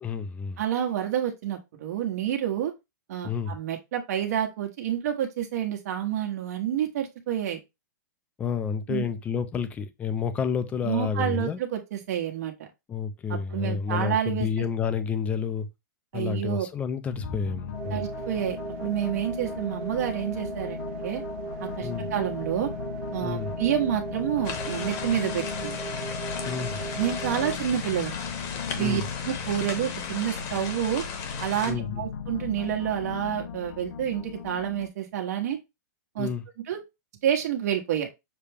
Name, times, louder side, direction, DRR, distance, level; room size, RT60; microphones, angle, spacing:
voice 1, 0.0-0.6 3.2-3.6 8.4-11.6 12.9-15.7 16.1-18.0 21.8-22.1 23.2-23.5 26.4-26.8 28.8-29.0 31.7-32.0 36.2-36.4, left 6 dB, 15° left, 0.4 m, -30 dB
voice 2, 0.6-2.7 3.1-7.6 8.9-9.0 10.8-12.7 13.3-14.6 16.1-16.7 17.9-21.2 21.6-22.7 23.1-25.8 27.0-28.1 28.7-31.0 31.4-35.6 36.1-36.3 36.7-36.8 37.2-38.1, right 10 dB, 55° right, 1.3 m, -29 dB
sound 1, 17.1-34.9, left 7 dB, 65° left, 0.7 m, -37 dB
sound 2, 17.7-27.6, right 4 dB, 30° right, 1.1 m, -37 dB
sound 3, 24.4-31.7, left 6 dB, 30° left, 1.0 m, -36 dB
6.6 x 2.3 x 3.5 m
hypercardioid pair, 155°, 10 cm